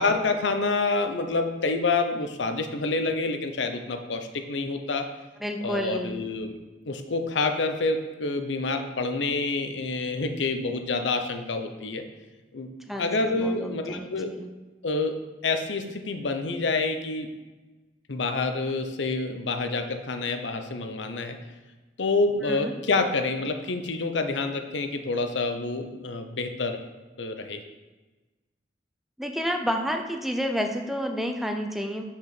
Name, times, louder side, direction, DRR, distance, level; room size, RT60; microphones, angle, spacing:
voice 1, 0.0-5.1 5.6-6.6 6.9-12.0 12.5-12.7 13.0-14.3 14.8-17.3 18.1-21.4 22.0-26.8 27.2-27.6, left 3 dB, 85° left, 7 dB, 0.7 m, -27 dB
voice 2, 5.4-6.2 12.9-14.5 22.4-22.7 29.2-32.0, equal, ahead, 4 dB, 0.5 m, -30 dB
6.0 x 4.9 x 5.9 m, 1.2 s
head